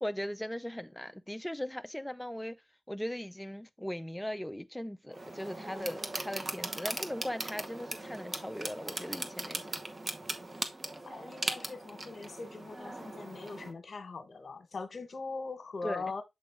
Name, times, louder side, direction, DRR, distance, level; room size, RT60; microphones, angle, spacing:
voice 1, 0.0-2.6 2.9-9.8 15.8-16.1, left 1 dB, 5° left, 0.3 m, -39 dB
sound 1, 5.1-13.7, right 2 dB, 40° right, 1.0 m, -39 dB
voice 2, 11.0-16.2, left 4 dB, 65° left, 1.1 m, -41 dB
7.6 x 3.6 x 3.4 m
cardioid pair, 55°, 0 cm